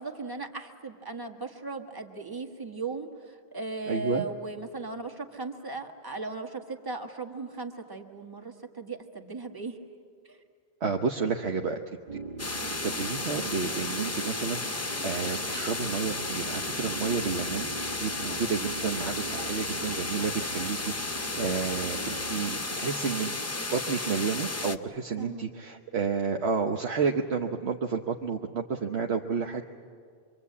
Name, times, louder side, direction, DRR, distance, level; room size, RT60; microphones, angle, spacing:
voice 1, 0.0-9.8 10.2-10.4 25.2-25.5, right 3 dB, 20° right, 3 dB, 1.5 m, -37 dB
voice 2, 3.9-4.2 10.8-11.8 12.7-17.7 18.0-23.3 23.7-29.6, right 5 dB, 75° right, 2 dB, 1.2 m, -31 dB
sound 1, 12.1-22.4, right 3 dB, 45° right, 1.3 m, -42 dB
sound 2, 12.4-24.8, left 2 dB, 20° left, 0.6 m, -33 dB
25.5 x 24.0 x 8.5 m, 2.2 s
omnidirectional pair, 1.1 m